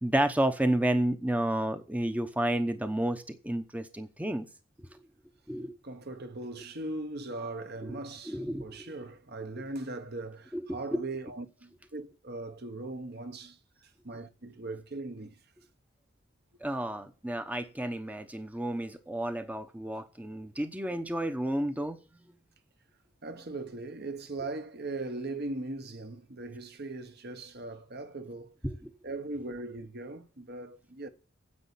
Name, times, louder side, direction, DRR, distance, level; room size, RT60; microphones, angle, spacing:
voice 1, 0.0-4.5 5.5-5.7 7.9-8.0 8.3-8.8 10.5-10.6 16.6-22.0 28.6-28.8, right 1 dB, 5° right, 0.8 m, -31 dB
voice 2, 5.8-15.4 23.2-28.5 29.0-31.1, right 2 dB, 50° right, 1.2 m, -39 dB
9.8 x 8.2 x 8.3 m
head